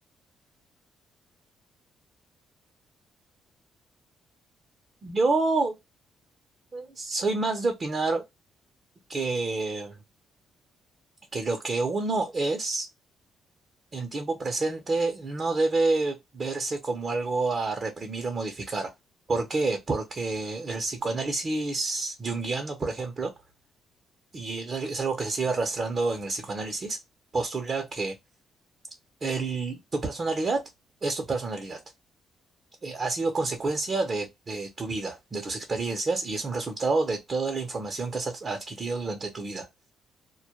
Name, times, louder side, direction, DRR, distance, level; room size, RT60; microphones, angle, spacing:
voice 1, 5.0-5.8 6.7-8.2 9.1-10.0 11.3-12.9 13.9-18.9 19.3-23.3 24.3-27.0 27.3-28.2 29.2-30.7 31.0-31.8 32.8-39.7, right 3 dB, 40° right, 0.7 m, -28 dB
2.2 x 2.1 x 2.8 m
cardioid pair, 90°, 0 cm